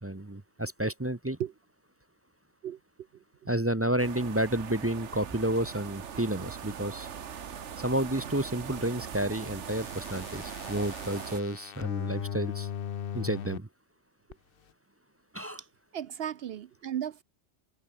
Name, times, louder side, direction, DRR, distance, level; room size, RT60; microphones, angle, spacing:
voice 1, 0.0-1.4 3.5-7.1 7.8-12.7 13.1-13.7 15.3-15.6, right 1 dB, 15° right, 0.8 m, -30 dB
sound 1, 4.0-11.4, right 7 dB, 85° right, 1.5 m, -41 dB
sound 2, 9.7-13.6 14.3-14.4, left 9 dB, 55° left, 0.9 m, -38 dB
voice 2, 15.9-17.2, right 10 dB, 65° right, 0.8 m, -35 dB
omnidirectional pair, 1.2 m